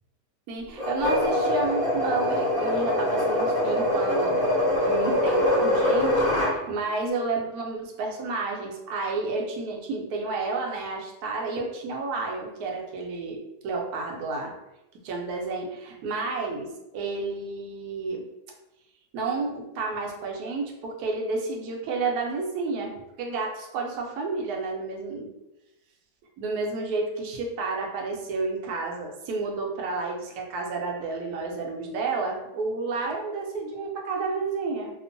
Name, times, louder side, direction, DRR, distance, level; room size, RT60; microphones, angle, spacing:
voice 1, 0.5-14.5 15.0-18.2 19.1-22.9 23.2-25.3 26.4-34.9, right 3 dB, 70° right, 0 dB, 1.0 m, -31 dB
sound 1, 0.8-6.6, left 1 dB, 5° right, 0.6 m, -24 dB
2.9 x 2.0 x 2.5 m, 0.95 s
omnidirectional pair, 1.8 m